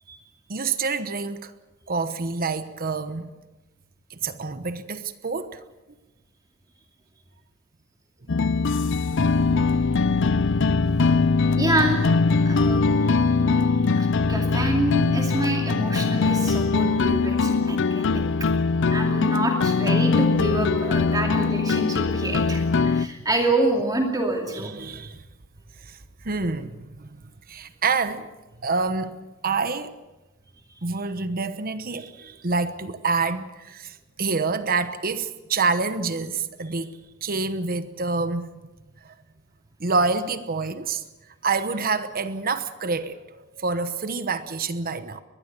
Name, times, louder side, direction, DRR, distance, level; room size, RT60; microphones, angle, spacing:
voice 1, 0.5-1.5 1.9-3.3 4.1-5.6 24.5-25.2 25.8-26.0 26.2-27.1 27.5-28.3 28.6-29.9 30.8-38.5 39.0-39.1 39.8-41.0 41.4-45.2, right 4 dB, 45° right, 1.1 m, -27 dB
sound 1, 8.3-23.1, left 4 dB, 60° left, 0.6 m, -21 dB
voice 2, 11.6-12.2 12.5-12.8 13.9-18.2 18.9-24.7, right 1 dB, 20° right, 2.6 m, -27 dB
22.5 x 20.5 x 6.8 m
head